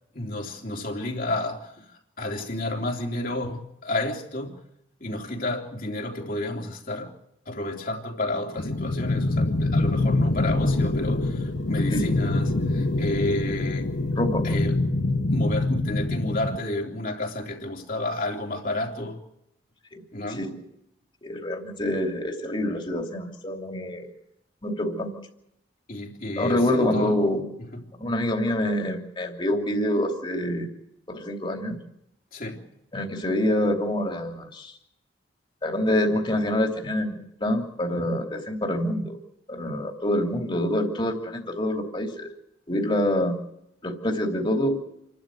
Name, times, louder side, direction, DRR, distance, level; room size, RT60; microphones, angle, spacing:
voice 1, 0.1-4.7 5.0-7.2 7.4-13.9 14.4-14.8 15.3-19.2 20.1-20.5 25.9-27.2 27.6-27.9 32.3-32.6, left 1 dB, 50° left, 3.4 m, -31 dB
sound 1, 8.6-16.6, left 2 dB, 70° left, 1.3 m, -25 dB
voice 2, 14.2-14.5 19.9-20.0 20.3-20.6 21.2-24.1 24.6-25.1 26.4-27.4 27.9-30.7 31.1-31.8 32.9-34.7 35.6-39.1 39.5-42.3 42.7-43.4 43.8-44.8, left 1 dB, 25° left, 3.0 m, -26 dB
28.0 x 12.5 x 9.2 m
head